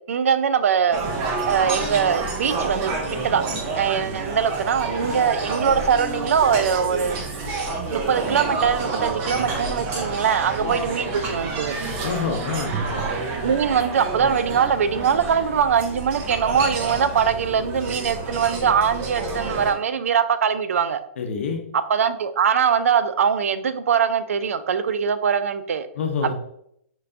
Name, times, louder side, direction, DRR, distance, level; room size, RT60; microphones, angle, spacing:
voice 1, 0.1-1.0 1.5-7.2 7.9-11.8 13.4-21.0 21.7-25.9 26.2-26.3, right 7 dB, 85° right, 12 dB, 0.4 m, -22 dB
sound 1, 0.9-19.7, right 3 dB, 25° right, 0.6 m, -29 dB
voice 2, 12.0-12.8 21.2-21.6 26.0-26.3, left 5 dB, 60° left, 4 dB, 0.7 m, -26 dB
4.6 x 3.3 x 2.5 m, 0.73 s
hypercardioid pair, 160°, 7 cm